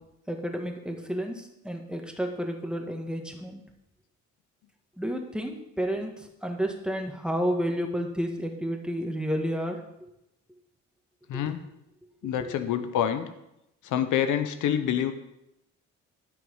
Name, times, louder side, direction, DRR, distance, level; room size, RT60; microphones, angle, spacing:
voice 1, 0.3-3.6 5.0-9.8 11.3-11.4 12.4-12.5, equal, 5° right, 3 dB, 1.8 m, -31 dB
voice 2, 11.3-11.6 12.2-13.2 13.8-15.1, left 9 dB, 85° left, 9 dB, 1.0 m, -26 dB
13.0 x 6.2 x 5.6 m, 0.85 s
cardioid pair, 90°, 30 cm